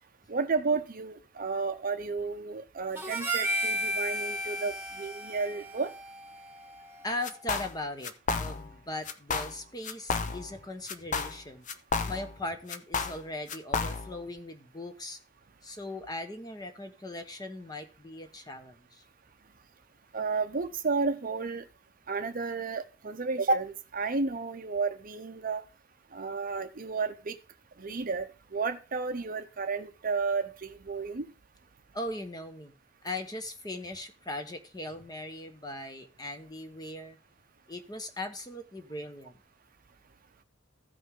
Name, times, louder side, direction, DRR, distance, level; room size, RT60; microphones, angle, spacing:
voice 1, 0.3-5.9 20.1-21.7 22.1-25.6 26.1-27.4 27.8-28.3 28.5-31.3, right 4 dB, 45° right, 0.7 m, -32 dB
Harmonica, 3.0-7.4, right 1 dB, 10° right, 1.4 m, -34 dB
voice 2, 7.0-11.7 12.0-15.2 15.6-19.0 31.9-32.7 33.0-37.2 37.7-39.4, left 1 dB, 20° left, 1.1 m, -39 dB
sound 1, 7.2-7.8 8.0-8.8 9.1-9.6 9.8-10.6 10.9-12.4 12.7-14.2, left 4 dB, 40° left, 0.7 m, -32 dB
15.0 x 5.3 x 3.7 m
head